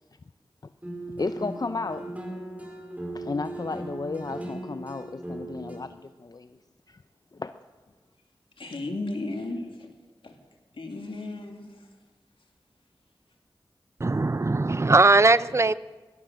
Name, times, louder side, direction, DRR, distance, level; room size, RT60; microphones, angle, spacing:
sound 1, 0.8-5.8, right 1 dB, 15° right, 4.6 m, -38 dB
voice 1, 1.2-2.1 3.1-6.6 6.9-7.0 7.3-7.5, left 3 dB, 50° left, 10 dB, 0.5 m, -33 dB
voice 2, 8.6-9.9 10.2-10.4 10.7-11.9, left 2 dB, 85° left, 3 dB, 2.1 m, -35 dB
voice 3, 14.0-15.7, right 3 dB, 35° right, 17 dB, 0.5 m, -20 dB
18.0 x 12.5 x 6.3 m, 1.3 s
cardioid pair, 45°, 9 cm